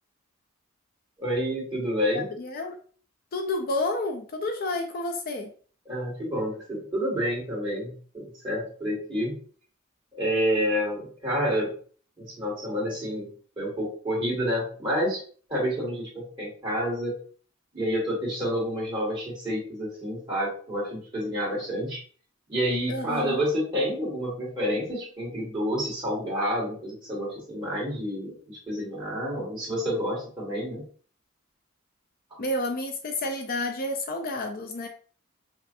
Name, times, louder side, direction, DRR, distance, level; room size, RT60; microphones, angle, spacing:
voice 1, 1.2-2.3 5.9-9.3 10.1-11.7 12.2-13.3 13.6-15.2 15.5-17.2 17.7-22.0 22.5-30.8, equal, 20° right, -5 dB, 2.0 m, -29 dB
voice 2, 2.4-2.8 3.3-5.5 22.9-23.4 32.4-34.9, left 2 dB, 45° left, 4 dB, 0.4 m, -30 dB
5.3 x 2.5 x 2.6 m, 0.43 s
head